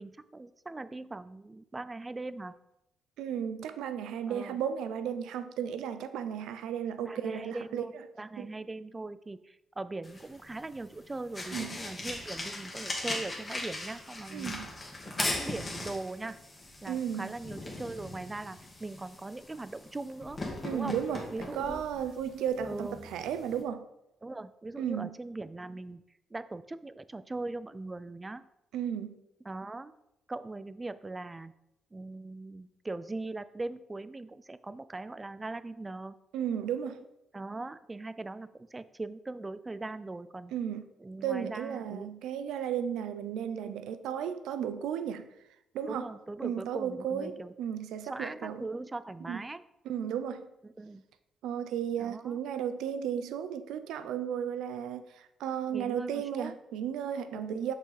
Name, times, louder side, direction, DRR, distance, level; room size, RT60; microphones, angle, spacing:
voice 1, 0.0-2.5 4.3-4.6 7.0-14.6 15.0-16.4 16.8-20.4 20.7-21.0 21.3-21.8 22.7-23.1 24.2-26.0 26.3-28.4 29.4-29.9 30.3-31.5 31.9-36.1 37.3-40.5 41.0-42.1 45.9-47.5 48.0-49.6 50.6-51.0 52.0-52.4 55.7-56.6 57.3-57.7, right 2 dB, 20° right, 0.3 m, -40 dB
voice 2, 3.2-7.8 8.4-8.5 11.5-11.8 14.3-14.7 16.9-17.3 20.6-21.2 21.5-23.9 24.8-25.1 28.7-29.2 36.3-37.0 40.5-40.8 41.2-45.3 45.7-46.1 46.4-48.7 49.3-49.4 49.9-50.5 51.4-57.7, right 8 dB, 85° right, 0.4 m, -34 dB
sound 1, 10.0-23.6, left 2 dB, 25° left, 1.5 m, -40 dB
6.0 x 5.6 x 3.3 m
cardioid pair, 90°, 0 cm